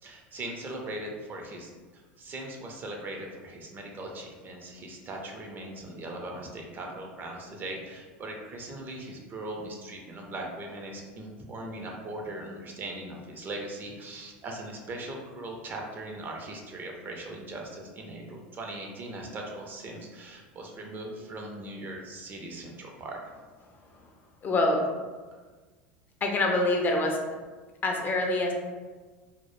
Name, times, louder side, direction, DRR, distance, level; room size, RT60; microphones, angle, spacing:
voice 1, 0.0-23.2, right 1 dB, 35° right, 1 dB, 0.5 m, -39 dB
voice 2, 24.4-24.8 26.2-27.2 27.8-28.5, left 2 dB, 35° left, 1 dB, 0.4 m, -25 dB
2.0 x 2.0 x 3.0 m, 1.4 s
hypercardioid pair, 95°, 6 cm